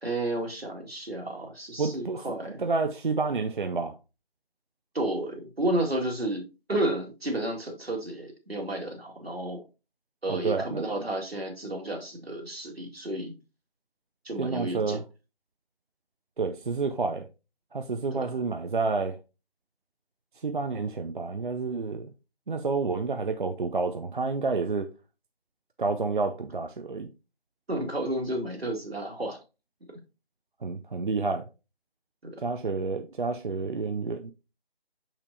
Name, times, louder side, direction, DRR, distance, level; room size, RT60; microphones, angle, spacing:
voice 1, 0.0-2.6 4.9-9.6 10.2-13.4 14.3-15.0 18.1-18.4 27.7-29.4 32.2-32.4, right 1 dB, 80° right, 2.1 m, -32 dB
voice 2, 1.8-2.2 2.6-3.9 10.3-10.9 14.4-15.0 16.4-17.3 17.7-19.2 20.4-22.1 22.5-24.9 25.8-27.1 30.6-31.4 32.4-34.3, right 4 dB, 55° right, 0.6 m, -29 dB
6.6 x 5.9 x 2.7 m
figure-of-eight pair, 160°, 30 cm